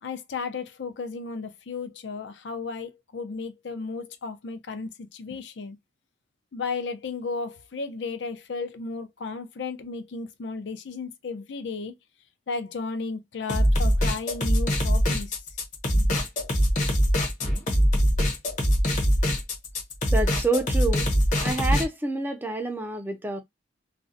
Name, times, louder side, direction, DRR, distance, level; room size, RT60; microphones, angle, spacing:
voice 1, 0.0-5.8 6.5-11.9 12.5-15.4 15.9-16.2, left 4 dB, 75° left, 0.5 m, -34 dB
sound 1, 13.5-21.9, equal, 45° left, 0.7 m, -23 dB
voice 2, 20.1-21.1 21.4-23.4, right 2 dB, 10° right, 0.3 m, -28 dB
2.4 x 2.1 x 2.6 m
head